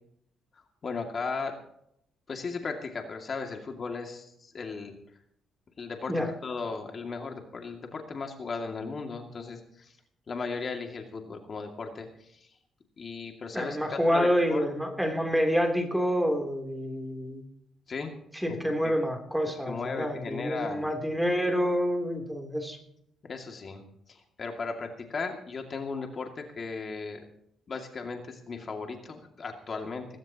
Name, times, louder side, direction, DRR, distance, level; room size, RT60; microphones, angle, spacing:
voice 1, 0.8-1.5 2.3-5.0 5.8-6.1 6.4-9.9 10.3-12.4 13.0-14.9 17.9-18.1 18.5-19.0 19.7-20.9 23.2-23.8 24.1-27.2 27.7-30.1, left 4 dB, 45° left, 3 dB, 2.4 m, -36 dB
voice 2, 13.5-17.4 18.3-22.8, equal, 5° right, 3 dB, 3.3 m, -28 dB
20.0 x 16.5 x 3.0 m, 0.73 s
cardioid pair, 90°, 0 cm